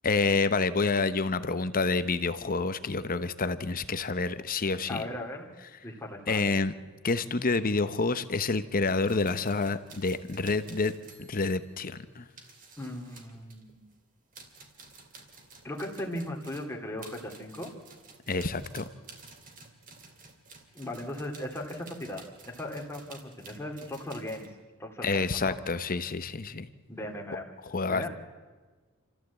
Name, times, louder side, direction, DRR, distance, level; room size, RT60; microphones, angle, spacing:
voice 1, 0.0-5.0 6.3-6.7 7.0-12.2 18.3-18.9 25.0-26.7 27.6-28.0, left 3 dB, 40° left, 13 dB, 0.9 m, -28 dB
voice 2, 4.9-5.5 5.8-6.4 12.8-13.8 15.6-17.7 20.7-24.5 24.8-25.6 26.9-27.5 27.9-28.1, left 1 dB, 10° left, 0 dB, 2.6 m, -37 dB
sound 1, 8.9-14.0 14.3-24.5, right 4 dB, 40° right, 2.7 m, -52 dB
28.0 x 14.0 x 8.2 m, 1.4 s
head